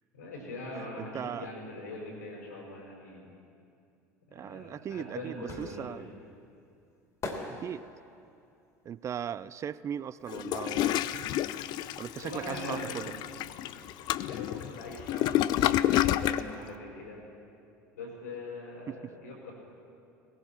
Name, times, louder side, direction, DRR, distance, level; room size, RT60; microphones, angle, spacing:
voice 1, 0.1-3.2 4.3-6.1 12.2-13.1 14.2-17.2 17.9-19.5, left 2 dB, 85° left, -2 dB, 4.8 m, -42 dB
voice 2, 0.8-1.5 4.3-6.0 7.5-7.8 8.9-11.4 12.0-13.1 18.9-19.0, right 9 dB, 35° right, 17 dB, 0.4 m, -38 dB
sound 1, 4.6-10.5 10.7-12.3 12.6-12.7, left 2 dB, 35° left, 2.5 m, -43 dB
Toilet flush, 10.3-16.5, left 13 dB, 50° left, 0.4 m, -29 dB
18.0 x 16.5 x 4.3 m, 2.5 s
hypercardioid pair, 70°, 9 cm